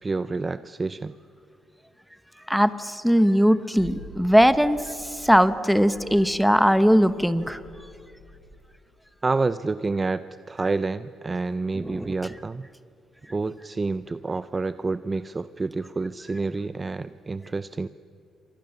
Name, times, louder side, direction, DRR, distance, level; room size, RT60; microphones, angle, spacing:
voice 1, 0.0-1.1 9.2-12.7 13.3-17.9, right 3 dB, 20° right, 14 dB, 0.5 m, -28 dB
voice 2, 2.5-7.6 11.7-12.3, equal, ahead, 12 dB, 1.0 m, -20 dB
sound 1, 3.8-8.6, left 3 dB, 90° left, 7.6 m, -47 dB
28.0 x 25.5 x 7.1 m, 2.7 s
cardioid pair, 150°, 0 cm